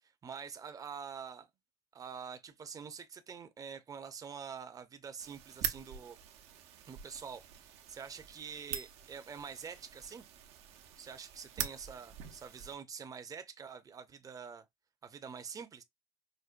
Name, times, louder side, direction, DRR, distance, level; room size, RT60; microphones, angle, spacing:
voice 1, 0.0-1.5 1.9-6.2 6.9-10.2 11.0-14.6 15.0-15.8, right 6 dB, 35° right, 0.7 m, -46 dB
sound 1, 5.2-12.8, right 10 dB, 75° right, 0.7 m, -44 dB
5.1 x 2.1 x 2.5 m
supercardioid pair, 80°, 11 cm